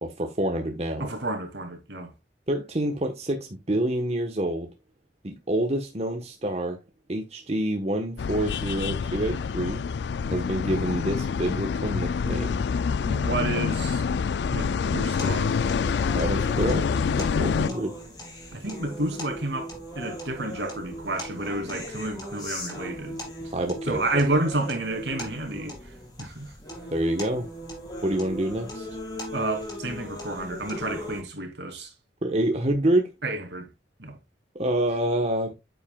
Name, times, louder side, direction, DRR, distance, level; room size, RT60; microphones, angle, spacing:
voice 1, 0.0-1.1 2.5-4.7 5.2-6.8 7.1-9.8 10.3-12.6 16.1-16.9 17.2-17.9 23.5-24.2 26.9-27.5 28.0-28.9 32.2-33.1 34.5-35.5, right 1 dB, 35° right, 1.2 m, -27 dB
voice 2, 1.0-2.1 13.1-14.0 14.5-15.6 18.5-23.5 23.9-26.5 29.3-31.9 33.2-33.7 34.0-34.2, right 2 dB, 70° right, 2.8 m, -30 dB
sound 1, 8.2-17.7, left 5 dB, 70° left, 0.3 m, -26 dB
sound 2, 15.2-31.2, equal, 20° left, 4.2 m, -38 dB
9.5 x 7.6 x 2.3 m
head